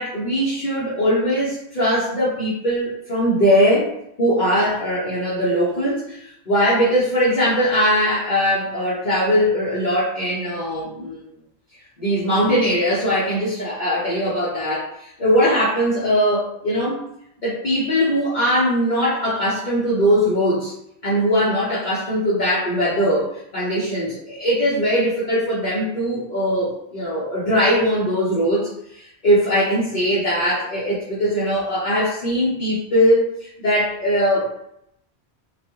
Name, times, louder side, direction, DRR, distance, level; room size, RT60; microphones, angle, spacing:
voice 1, 0.0-3.9 4.2-11.2 12.0-17.0 17.4-20.7 21.0-34.5, equal, 50° left, -10 dB, 0.8 m, -20 dB
2.3 x 2.3 x 2.8 m, 0.76 s
omnidirectional pair, 1.1 m